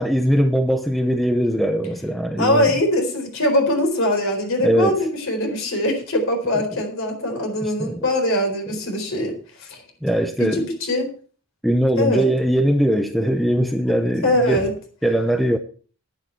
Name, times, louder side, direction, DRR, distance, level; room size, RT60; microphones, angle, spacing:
voice 1, 0.0-2.8 4.6-5.0 7.6-8.0 10.0-10.7 11.6-14.6 15.0-15.6, equal, ahead, 0.7 m, -20 dB
voice 2, 2.4-9.3 9.6-9.8 10.4-11.1 12.0-12.3 14.2-14.7, left 1 dB, 60° left, 4.1 m, -22 dB
11.0 x 11.0 x 4.5 m
head